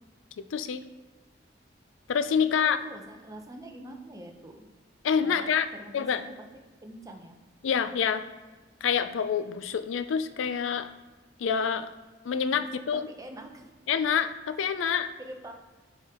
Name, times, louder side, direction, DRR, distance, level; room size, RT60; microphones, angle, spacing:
voice 1, 0.4-0.8 2.1-2.8 5.0-5.7 5.9-6.2 7.6-8.2 8.8-10.9 11.4-11.9 12.2-13.1 13.9-15.1, left 7 dB, 80° left, 12 dB, 0.4 m, -27 dB
voice 2, 2.4-4.6 5.2-5.5 5.8-6.3 6.8-7.4 12.9-13.7 14.7-15.5, right 1 dB, 20° right, 3 dB, 0.7 m, -45 dB
7.1 x 4.3 x 3.7 m, 1.3 s
head